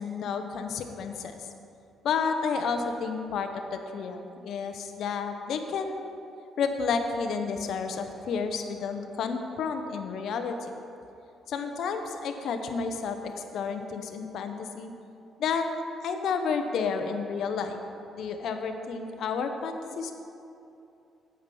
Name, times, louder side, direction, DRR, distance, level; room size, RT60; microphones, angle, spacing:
voice 1, 0.0-1.5 2.0-6.1 6.6-10.7 11.5-14.9 15.4-15.7 16.0-17.8 18.1-20.1, left 5 dB, 70° left, 6 dB, 0.9 m, -31 dB
8.7 x 8.3 x 5.4 m, 2.7 s
cardioid pair, 90°, 0 cm